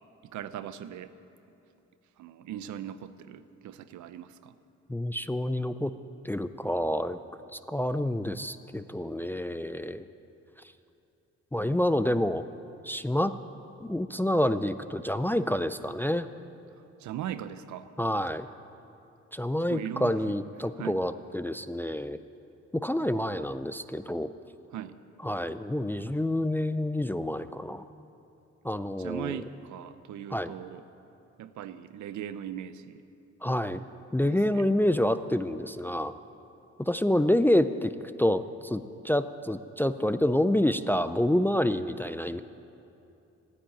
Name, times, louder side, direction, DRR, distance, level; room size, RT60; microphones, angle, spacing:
voice 1, 0.2-1.1 2.2-4.5 17.0-17.9 19.6-20.2 20.8-21.0 24.7-25.0 29.0-30.8 31.4-33.0 34.3-34.7, right 10 dB, 70° right, 13 dB, 0.7 m, -39 dB
voice 2, 4.9-5.9 6.2-7.2 7.5-10.1 11.5-12.4 12.8-13.3 13.8-16.3 18.0-18.5 19.3-22.2 22.7-24.3 25.2-27.8 28.6-29.4 30.3-30.5 33.4-33.8 34.1-36.1 36.8-37.9 38.2-42.4, left 1 dB, 5° left, 11 dB, 0.4 m, -28 dB
13.5 x 9.9 x 8.9 m, 2.8 s
cardioid pair, 90°, 30 cm